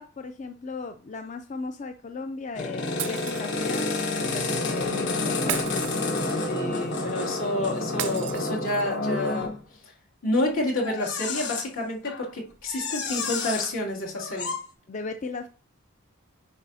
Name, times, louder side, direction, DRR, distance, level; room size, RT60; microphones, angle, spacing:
voice 1, 0.0-6.0 14.9-15.5, left 4 dB, 35° left, 7 dB, 0.3 m, -37 dB
sound 1, 2.6-9.6 10.8-11.7 12.1-12.3 12.7-13.7 14.2-14.6, left 3 dB, 50° left, 1.2 m, -29 dB
Shatter, 3.0-3.9 5.5-6.6 8.0-9.0, right 12 dB, 55° right, 0.4 m, -35 dB
voice 2, 6.5-9.5 10.2-14.5, left 1 dB, 70° left, -3 dB, 2.4 m, -29 dB
9.2 x 5.5 x 2.7 m, 0.38 s
head